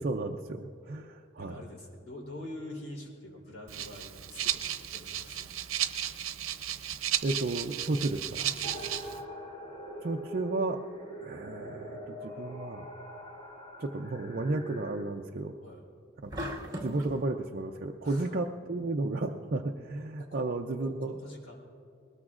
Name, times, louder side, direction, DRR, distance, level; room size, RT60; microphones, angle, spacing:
voice 1, 0.0-1.6 7.2-8.4 10.0-10.8 11.2-12.9 13.8-15.5 16.2-16.5 16.8-21.2, right 2 dB, 45° right, 1 dB, 0.5 m, -33 dB
voice 2, 1.4-5.5 8.4-9.2 15.6-15.8 18.0-18.3 20.2-20.7 21.1-21.6, left 1 dB, 75° left, -1 dB, 3.7 m, -45 dB
Rattle (instrument), 3.7-9.2, right 11 dB, 85° right, 0.7 m, -34 dB
sound 1, 8.6-14.9, equal, 25° left, 4.1 m, -43 dB
sound 2, 16.3-17.2, equal, 20° right, 1.8 m, -37 dB
21.5 x 20.0 x 2.5 m, 2.5 s
head